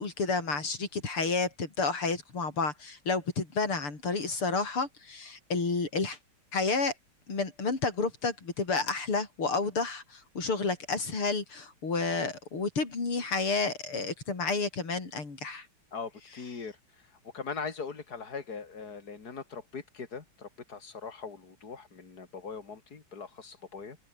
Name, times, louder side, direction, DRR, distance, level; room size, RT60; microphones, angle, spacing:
voice 1, 0.0-6.2 6.5-6.9 7.3-15.7, left 4 dB, 85° left, 5.7 m, -30 dB
voice 2, 15.9-16.8 17.2-24.0, left 5 dB, 45° left, 3.4 m, -41 dB
open air
omnidirectional pair, 2.4 m